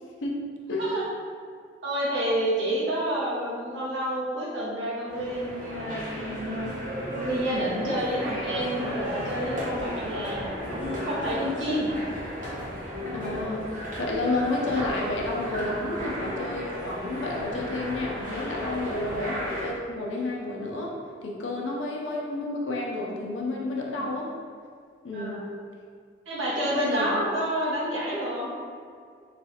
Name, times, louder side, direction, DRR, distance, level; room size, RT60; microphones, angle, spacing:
voice 1, 1.8-6.7 7.1-11.9 24.0-24.1 25.1-25.4 26.3-28.5, right 1 dB, 85° right, -6 dB, 1.0 m, -29 dB
sound 1, 5.1-19.7, equal, 45° right, 0.9 m, -34 dB
voice 2, 13.1-24.3 25.0-25.4 26.7-27.1, left 2 dB, 90° left, -2 dB, 0.6 m, -30 dB
4.1 x 2.3 x 2.9 m, 2.1 s
head